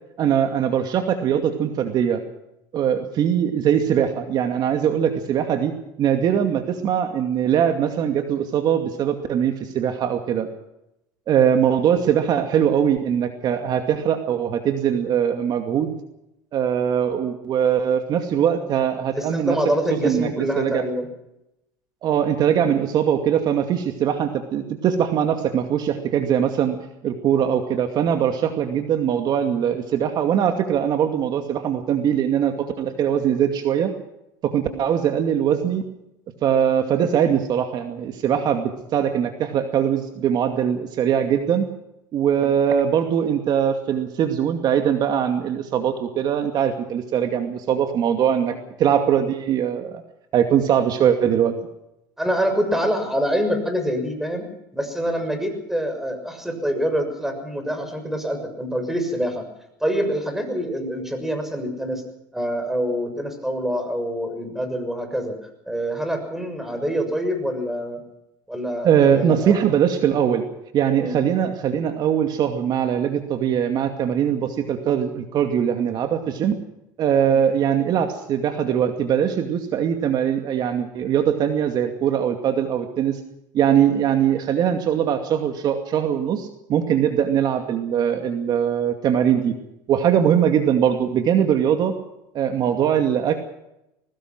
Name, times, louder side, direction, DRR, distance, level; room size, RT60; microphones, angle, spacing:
voice 1, 0.2-2.2 2.7-10.5 11.3-15.9 16.5-19.6 20.0-20.8 22.0-26.8 27.0-33.9 34.4-35.8 36.4-41.7 42.1-50.0 50.3-51.5 68.8-70.4 70.7-76.6 77.0-83.2 83.5-89.5 89.9-91.9 92.3-93.4, right 9 dB, 45° right, 6 dB, 2.4 m, -21 dB
voice 2, 19.1-21.1 34.7-34.8 42.3-42.5 48.4-48.5 52.2-54.4 54.7-59.4 59.8-62.0 62.3-65.4 65.7-68.0 68.5-69.5 71.0-71.1, equal, 5° right, 7 dB, 6.6 m, -25 dB
22.0 x 20.0 x 6.1 m, 0.85 s
supercardioid pair, 115°, 10 cm